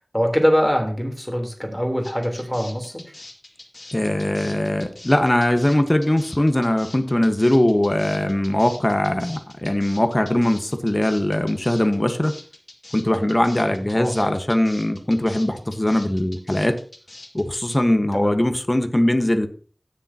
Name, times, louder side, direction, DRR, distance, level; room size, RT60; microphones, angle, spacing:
voice 1, 0.1-2.9 13.9-14.3 18.1-18.4, equal, 5° left, 2 dB, 3.3 m, -23 dB
sound 1, 2.0-17.8, left 2 dB, 75° left, 2.0 m, -43 dB
voice 2, 3.9-12.3 12.9-16.8 17.3-19.5, left 1 dB, 30° left, 8 dB, 1.2 m, -20 dB
17.0 x 6.8 x 2.8 m, 0.42 s
wide cardioid pair, 45°, 0 cm